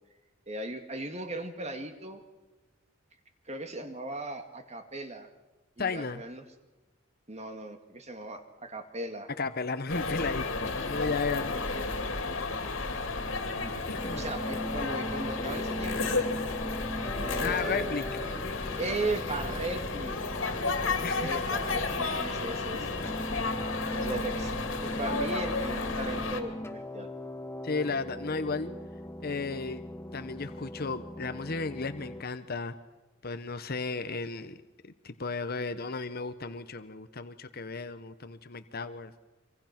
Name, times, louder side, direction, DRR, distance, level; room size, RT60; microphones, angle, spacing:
voice 1, 0.5-2.2 3.5-5.3 5.8-6.5 7.3-9.3 13.2-13.8 14.1-16.2 17.1-17.9 18.8-20.1 21.1-23.0 23.9-24.5 24.8-27.1, right 2 dB, 35° right, 7 dB, 2.1 m, -37 dB
voice 2, 5.8-6.2 9.4-11.6 13.9-14.2 17.4-18.1 21.0-21.5 27.6-28.7 29.2-29.8 30.1-32.8 33.2-39.1, left 4 dB, 50° left, 10 dB, 1.0 m, -34 dB
sound 1, 9.9-26.4, left 3 dB, 75° left, 2.6 m, -32 dB
sound 2, 14.0-32.2, left 1 dB, 15° left, 1.2 m, -39 dB
25.5 x 25.0 x 6.0 m, 1.1 s
head